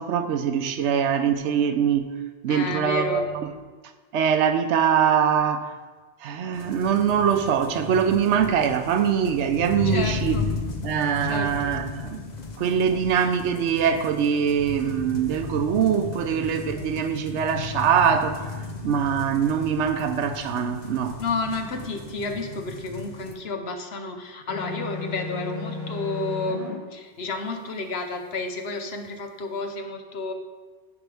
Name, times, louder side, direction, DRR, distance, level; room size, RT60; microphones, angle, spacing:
voice 1, 0.0-3.5 4.1-5.8 6.2-10.4 10.8-12.2 12.6-21.2, right 7 dB, 85° right, 8 dB, 0.9 m, -23 dB
voice 2, 2.5-3.3 9.8-10.5 11.2-11.7 21.2-30.3, left 3 dB, 65° left, 5 dB, 1.1 m, -31 dB
sound 1, 6.5-23.3, left 4 dB, 45° left, 0.8 m, -35 dB
sound 2, 24.5-26.7, left 3 dB, ahead, 2.9 m, -33 dB
13.5 x 5.1 x 3.4 m, 1.4 s
omnidirectional pair, 1.2 m